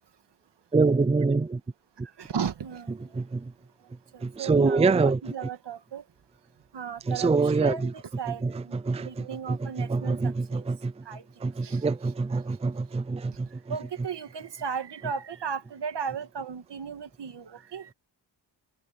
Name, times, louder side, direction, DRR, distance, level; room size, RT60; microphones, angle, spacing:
voice 1, 0.7-1.6 3.1-3.5 4.2-5.2 7.1-7.9 8.4-10.9 11.4-13.7, right 4 dB, 15° right, 0.5 m, -25 dB
voice 2, 2.2-2.9 4.1-6.0 6.7-7.3 7.6-8.7 9.0-10.6 11.1-11.2 11.6-11.8 13.7-17.9, right 6 dB, 75° right, 2.0 m, -35 dB
wide cardioid pair, 125°, 42 cm